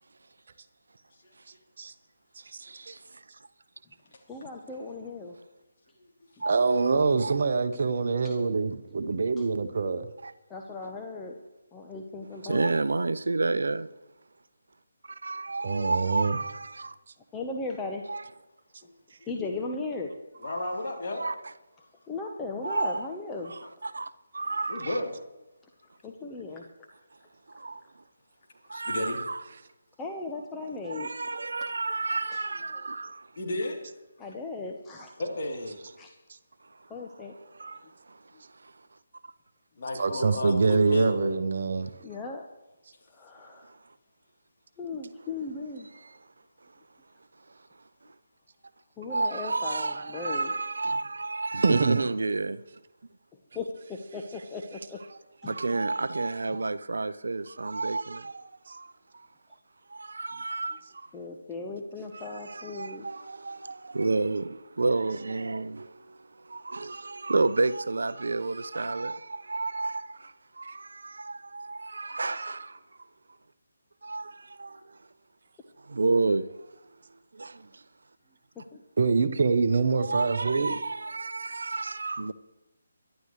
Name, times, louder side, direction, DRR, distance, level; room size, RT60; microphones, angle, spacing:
voice 1, 2.6-3.2 6.4-7.4 10.2-10.3 12.4-13.9 15.0-17.0 18.1-18.3 20.4-20.8 21.1-21.5 22.6-23.0 23.5-25.0 27.5-27.8 28.7-29.4 30.8-33.3 37.5-38.2 38.6-38.7 43.6-43.7 45.9-46.2 49.1-52.6 55.1-59.3 59.9-61.1 62.1-72.8 74.0-75.0 75.8-76.5 77.4-77.8 80.0-82.3, right 3 dB, 65° right, 0.6 m, -31 dB
voice 2, 4.3-5.3 8.2-8.4 9.4-9.5 10.5-11.4 11.7-12.7 17.3-18.0 19.3-20.1 22.1-23.5 26.0-26.6 30.0-31.5 32.3-32.4 34.2-35.1 36.0-36.1 36.9-37.3 42.0-42.5 43.1-43.7 44.8-45.9 49.0-50.5 53.5-55.0 55.4-55.5 61.1-63.0 78.7-78.8, left 3 dB, 10° left, 1.0 m, -37 dB
voice 3, 6.5-10.1 15.6-16.4 39.9-41.9 51.6-52.0 70.7-70.8 79.0-80.7, right 4 dB, 50° right, 0.9 m, -25 dB
voice 4, 20.4-21.2 24.7-25.1 28.7-29.2 33.4-33.8 35.2-35.8 39.8-41.2, left 1 dB, 45° left, 3.3 m, -32 dB
23.5 x 11.5 x 3.2 m
figure-of-eight pair, 150°, 0 cm